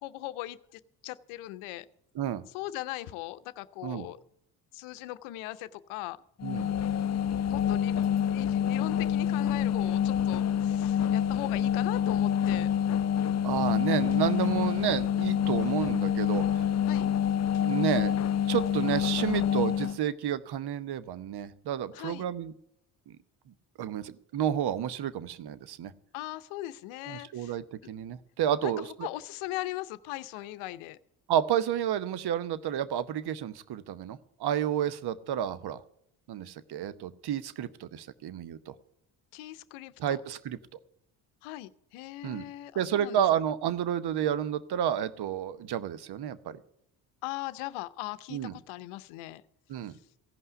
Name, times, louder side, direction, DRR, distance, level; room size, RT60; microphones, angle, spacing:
voice 1, 0.0-1.9 2.5-4.2 4.7-6.2 7.5-12.7 16.8-17.1 21.9-22.2 26.1-27.5 27.8-27.9 28.6-28.7 29.0-31.0 39.3-40.2 41.4-43.2 47.2-49.4, left 16 dB, 80° left, 15 dB, 0.8 m, -39 dB
sound 1, 6.4-20.0, left 9 dB, 35° left, 0.5 m, -27 dB
voice 2, 13.4-16.6 17.5-18.2 18.5-22.5 23.1-23.2 23.8-25.9 27.1-29.1 31.3-35.8 36.3-38.7 40.0-40.6 42.2-42.4 42.7-46.6 48.3-48.5 49.7-49.9, right 10 dB, 50° right, 15 dB, 0.9 m, -31 dB
16.0 x 5.6 x 9.5 m, 0.75 s
hypercardioid pair, 55°, 49 cm